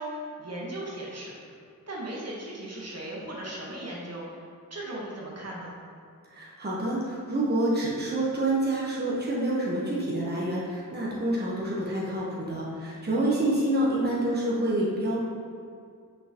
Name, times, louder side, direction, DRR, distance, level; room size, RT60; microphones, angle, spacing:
voice 1, 0.0-1.6 1.9-4.4 4.7-5.8, right 1 dB, 45° right, -4 dB, 1.3 m, -37 dB
voice 2, 6.3-15.2, right 1 dB, 30° right, -5 dB, 1.2 m, -27 dB
5.9 x 5.5 x 3.0 m, 2.3 s
cardioid pair, 60°, 34 cm